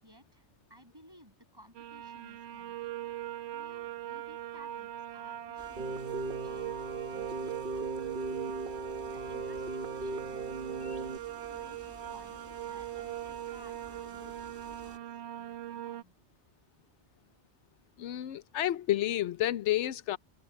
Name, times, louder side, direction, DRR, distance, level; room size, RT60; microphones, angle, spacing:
voice 1, 0.0-2.9 3.2-8.1 9.1-16.1, equal, 20° right, 7.9 m, -58 dB
sound 1, 1.7-16.0, right 12 dB, 75° right, 0.9 m, -41 dB
sound 2, 5.6-15.0, equal, 15° left, 3.0 m, -54 dB
Keyboard (musical), 5.8-11.2, right 2 dB, 50° right, 1.2 m, -38 dB
voice 2, 18.0-20.2, left 13 dB, 90° left, 1.0 m, -30 dB
omnidirectional pair, 1.2 m